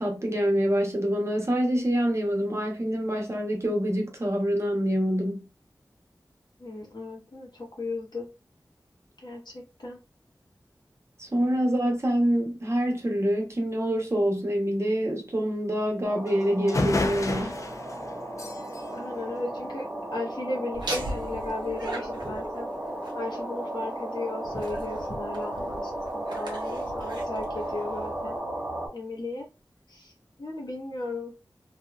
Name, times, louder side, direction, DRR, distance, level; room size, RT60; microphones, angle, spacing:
voice 1, 0.0-5.4 11.2-17.6, equal, 40° right, 0.8 m, -26 dB
voice 2, 6.6-8.3 9.2-10.0 18.9-22.7 23.1-28.4 28.9-29.5 29.9-30.1 30.4-31.3, left 2 dB, 80° left, 0.9 m, -36 dB
sound 1, 16.0-28.9, right 1 dB, 20° right, 1.1 m, -35 dB
sound 2, 16.3-16.4 16.7-20.1, left 2 dB, 45° left, 0.4 m, -32 dB
Laughter, 20.7-28.4, right 1 dB, 85° right, 0.9 m, -40 dB
2.7 x 2.2 x 2.2 m
wide cardioid pair, 70°, 7 cm